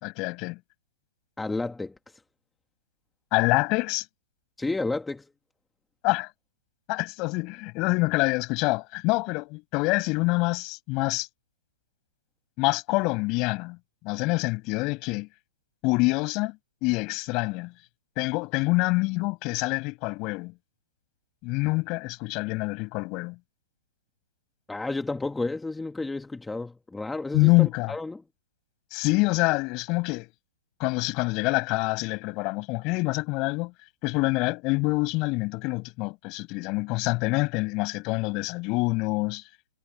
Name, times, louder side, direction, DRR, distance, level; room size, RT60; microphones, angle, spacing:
voice 1, 0.0-0.6 3.3-4.0 6.0-6.3 6.9-11.3 12.6-13.8 14.0-15.3 15.8-17.7 18.2-20.5 21.4-23.4 27.3-27.9 28.9-30.3 30.8-33.7 34.0-39.4, left 25 dB, 35° left, 5.4 m, -26 dB
voice 2, 1.4-2.2 4.6-5.3 24.7-28.2, left 3 dB, 5° left, 1.6 m, -31 dB
hypercardioid pair, 145°, 0 cm